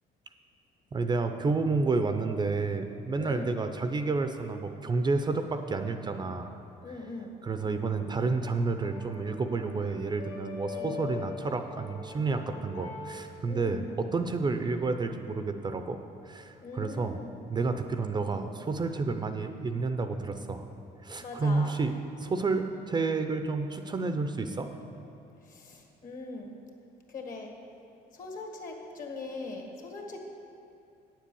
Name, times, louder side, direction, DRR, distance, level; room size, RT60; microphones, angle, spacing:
voice 1, 0.9-6.5 7.4-16.0 16.2-17.2 17.5-20.7 21.0-21.9 22.2-24.7, right 3 dB, 25° right, 7 dB, 0.5 m, -30 dB
voice 2, 3.1-3.5 6.8-7.3 10.7-11.3 13.5-14.0 16.6-17.4 21.2-21.7 25.4-26.6 27.1-27.6 28.1-30.2, left 3 dB, 50° left, 1 dB, 1.7 m, -41 dB
Brass instrument, 7.7-13.2, left 6 dB, 80° left, 2.2 m, -43 dB
8.9 x 7.5 x 6.9 m, 2.6 s
cardioid pair, 110°, 17 cm